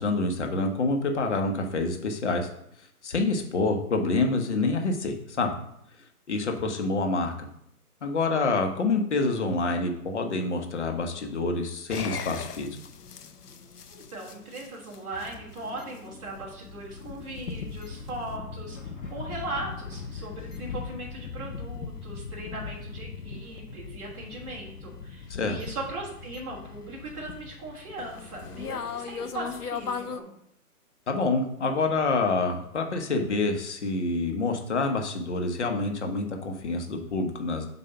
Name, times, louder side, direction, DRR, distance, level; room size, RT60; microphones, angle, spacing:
voice 1, 0.0-2.5 3.0-5.5 6.3-7.3 8.0-12.8 25.3-25.6 31.1-37.7, left 3 dB, 50° left, 4 dB, 1.1 m, -27 dB
sound 1, 11.9-30.2, left 5 dB, 85° left, 0.7 m, -39 dB
voice 2, 13.9-30.3, right 2 dB, 20° right, -6 dB, 1.4 m, -39 dB
sound 2, 15.1-21.4, left 2 dB, 15° left, 1.3 m, -49 dB
7.8 x 2.7 x 5.6 m, 0.73 s
figure-of-eight pair, 150°, 45 cm